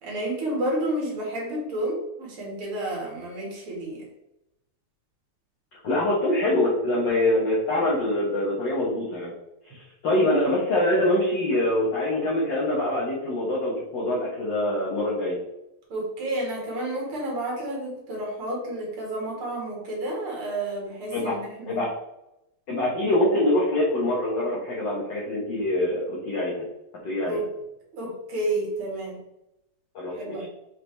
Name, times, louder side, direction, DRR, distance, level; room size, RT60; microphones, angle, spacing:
voice 1, 0.0-4.1 15.9-21.8 27.2-27.4 27.9-29.2 30.1-30.5, right 1 dB, 45° right, -2 dB, 2.5 m, -30 dB
voice 2, 5.8-9.3 9.6-15.4 21.1-21.3 21.7-21.9 22.7-26.7 27.0-27.4 29.9-30.5, left 1 dB, 55° left, -5 dB, 1.3 m, -24 dB
5.8 x 5.0 x 3.3 m, 0.89 s
omnidirectional pair, 3.6 m